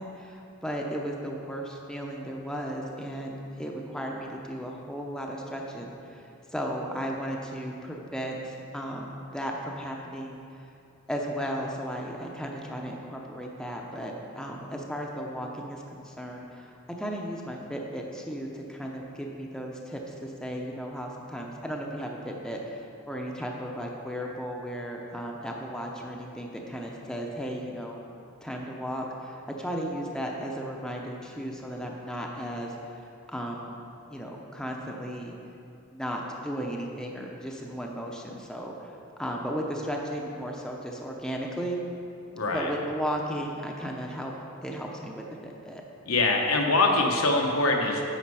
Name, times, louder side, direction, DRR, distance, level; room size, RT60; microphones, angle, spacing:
voice 1, 0.0-6.2 6.5-10.4 11.1-16.7 17.0-28.0 28.4-32.7 33.3-33.8 34.1-35.4 35.9-38.9 39.2-41.8 42.5-44.3 44.6-45.8, equal, 5° left, -1 dB, 0.7 m, -35 dB
voice 2, 42.3-42.7 46.1-48.0, left 2 dB, 90° left, 1 dB, 1.2 m, -23 dB
10.0 x 6.4 x 4.8 m, 2.6 s
head